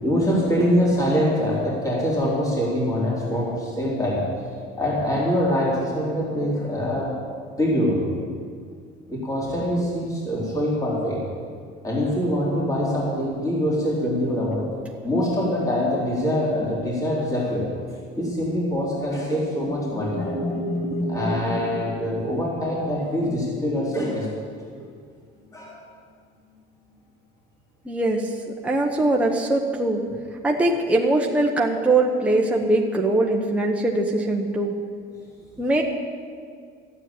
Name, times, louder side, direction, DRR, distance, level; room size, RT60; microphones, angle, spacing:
voice 1, 0.0-4.3 4.8-7.2 7.6-8.1 9.1-11.2 11.8-17.7 18.2-20.5 21.1-24.5 24.8-24.9 25.5-25.7, equal, 15° left, -5 dB, 3.7 m, -24 dB
sound 1, 19.3-22.8, equal, 35° left, 2.2 m, -30 dB
voice 2, 27.8-28.3 28.6-30.0 30.4-34.8 35.6-35.8, right 2 dB, 5° right, 0 dB, 1.0 m, -21 dB
13.0 x 9.0 x 8.5 m, 2.1 s
cardioid pair, 130°, 21 cm